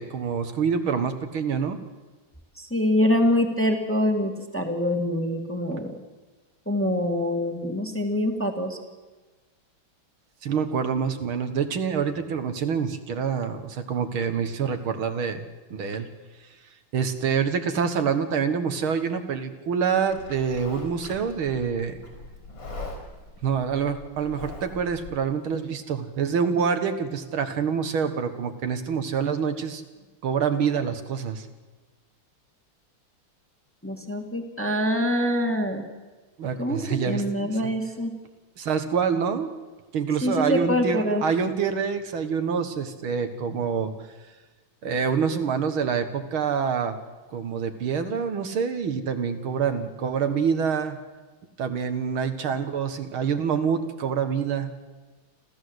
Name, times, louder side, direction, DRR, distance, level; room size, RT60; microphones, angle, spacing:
voice 1, 0.0-1.8 10.4-15.4 15.7-16.1 16.9-22.0 23.4-29.8 30.2-31.5 36.4-37.7 38.6-39.5 39.9-43.9 44.8-47.0 47.3-51.0 51.6-54.7, right 6 dB, 75° right, 8 dB, 2.3 m, -26 dB
voice 2, 2.6-5.9 6.7-8.8 33.8-35.9 36.6-38.1 40.2-41.2, left 1 dB, 5° left, 3 dB, 1.9 m, -25 dB
Livestock farm animals working animals, 20.1-25.1, left 2 dB, 60° left, 5.2 m, -41 dB
28.0 x 14.0 x 8.0 m, 1.3 s
omnidirectional pair, 2.3 m